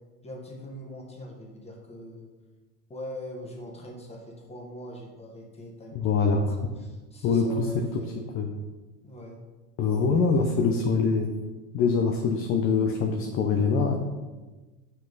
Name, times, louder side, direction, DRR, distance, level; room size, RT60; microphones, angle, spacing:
voice 1, 0.2-2.3 2.9-8.3 9.0-9.4 9.9-11.0, equal, 15° left, -1 dB, 1.3 m, -42 dB
voice 2, 5.9-6.6 7.2-7.7 8.3-8.5 9.8-11.3 11.7-14.0, left 4 dB, 30° left, 3 dB, 0.5 m, -24 dB
5.6 x 5.4 x 3.9 m, 1.2 s
supercardioid pair, 125°, 46 cm